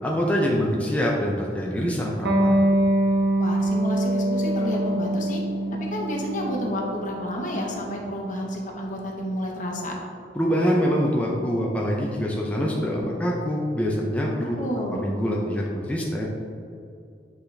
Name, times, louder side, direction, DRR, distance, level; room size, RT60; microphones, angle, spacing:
voice 1, 0.0-2.6 10.3-14.6 14.9-16.3, equal, 10° left, -3 dB, 0.5 m, -25 dB
Electric guitar, 2.2-9.4, right 1 dB, 70° right, 0.9 m, -24 dB
voice 2, 3.4-5.4 5.7-9.9 14.4-15.0, equal, 50° left, -1 dB, 1.0 m, -30 dB
8.3 x 4.0 x 3.3 m, 2.5 s
head